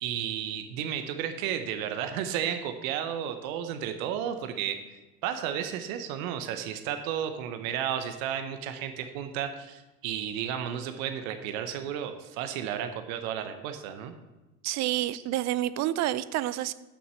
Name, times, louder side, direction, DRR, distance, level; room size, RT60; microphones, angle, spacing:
voice 1, 0.0-4.8 5.2-14.1 15.1-15.2, right 9 dB, 65° right, 8 dB, 1.1 m, -33 dB
voice 2, 14.6-16.7, right 14 dB, 40° right, 15 dB, 0.4 m, -28 dB
6.6 x 6.1 x 7.5 m, 1.1 s
hypercardioid pair, 95°, 44 cm